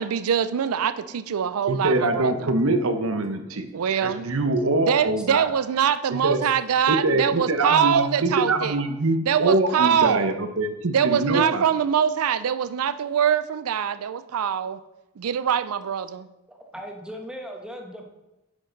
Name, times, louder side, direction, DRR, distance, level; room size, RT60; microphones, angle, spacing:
voice 1, 0.0-2.5 3.7-4.3 4.8-8.8 9.3-10.4 10.9-14.8 15.2-16.3, right 8 dB, 85° right, 14 dB, 0.4 m, -23 dB
voice 2, 0.8-1.1 3.4-3.6 16.5-18.0, equal, 5° right, 1 dB, 1.1 m, -40 dB
voice 3, 1.7-3.7 4.0-5.4 6.1-6.4 6.9-11.6, right 2 dB, 70° right, 7 dB, 0.9 m, -24 dB
9.7 x 6.4 x 3.9 m, 0.96 s
head